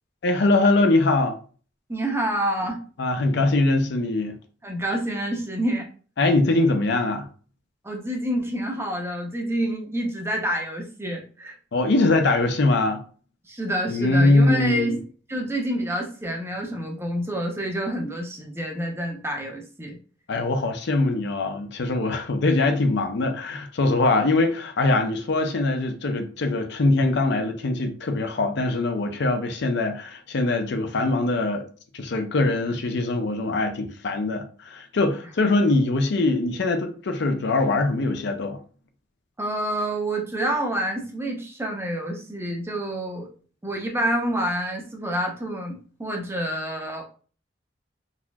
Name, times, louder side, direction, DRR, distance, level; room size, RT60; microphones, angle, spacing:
voice 1, 0.2-1.4 3.0-4.4 6.2-7.3 11.7-13.0 13.9-15.0 20.3-31.6 31.9-38.6, left 2 dB, 65° left, 0.5 m, -22 dB
voice 2, 1.9-2.8 4.6-5.9 7.8-11.6 13.5-15.0 15.3-20.0 39.4-43.3 43.6-47.0, right 1 dB, 15° right, 0.7 m, -28 dB
4.0 x 2.8 x 2.3 m
head